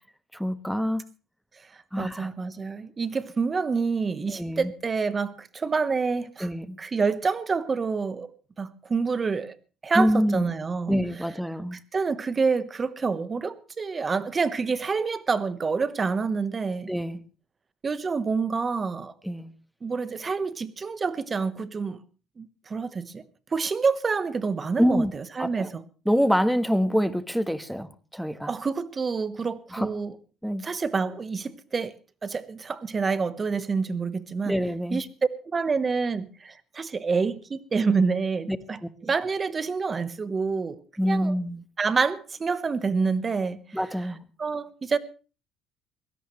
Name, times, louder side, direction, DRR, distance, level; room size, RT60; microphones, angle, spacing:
voice 1, 0.3-1.0 1.9-2.3 4.3-4.7 6.4-6.8 9.9-10.5 10.9-11.8 16.9-17.2 19.2-19.5 24.8-25.1 25.4-25.7 26.0-28.5 29.7-29.9 30.4-30.6 34.4-35.0 38.5-38.6 38.8-38.9 41.0-41.6 43.7-44.2, equal, ahead, 1.3 m, -26 dB
voice 2, 2.0-6.5 6.8-8.3 8.6-9.5 9.8-11.0 11.7-16.9 17.8-19.1 19.8-22.0 22.4-23.2 23.5-25.8 28.5-30.1 30.6-31.9 32.2-34.6 34.9-35.1 35.5-41.3 41.8-43.8 44.4-45.0, right 4 dB, 30° right, 1.2 m, -27 dB
22.5 x 17.0 x 3.2 m
cardioid pair, 105°, 0 cm